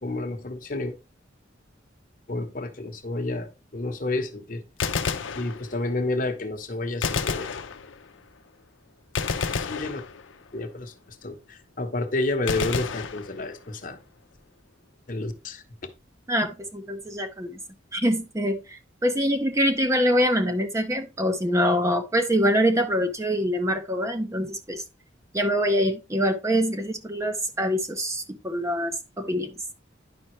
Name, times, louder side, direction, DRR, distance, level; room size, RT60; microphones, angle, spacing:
voice 1, 0.0-0.9 2.3-4.6 5.3-7.5 9.5-10.0 10.5-14.0 15.1-15.6, left 2 dB, 45° left, 1.0 m, -30 dB
Gunshot gunfire, 4.8-6.0 7.0-8.2 9.2-10.6 12.5-13.8, left 5 dB, 90° left, 0.7 m, -30 dB
voice 2, 16.3-17.6 17.9-24.8 25.3-29.5, equal, 15° right, 0.6 m, -24 dB
10.0 x 5.4 x 3.1 m
head